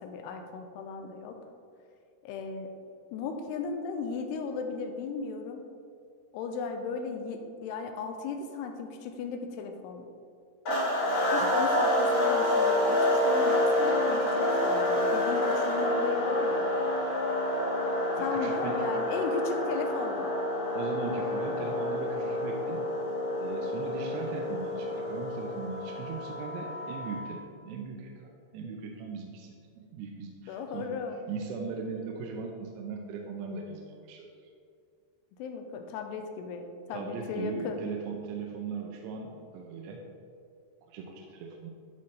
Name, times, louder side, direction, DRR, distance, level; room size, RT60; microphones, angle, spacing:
voice 1, 0.0-1.3 2.2-2.7 3.1-5.6 6.3-10.1 11.3-16.7 18.2-20.3 30.5-31.2 35.4-37.8, left 5 dB, 80° left, 5 dB, 2.6 m, -36 dB
sound 1, 10.7-27.3, left 1 dB, 55° left, 1.8 m, -28 dB
voice 2, 18.2-18.8 20.7-22.8 23.4-31.0 31.3-34.5 36.9-40.0 40.8-41.7, right 5 dB, 80° right, 1 dB, 2.8 m, -39 dB
11.5 x 5.4 x 3.2 m, 2.3 s
omnidirectional pair, 5.0 m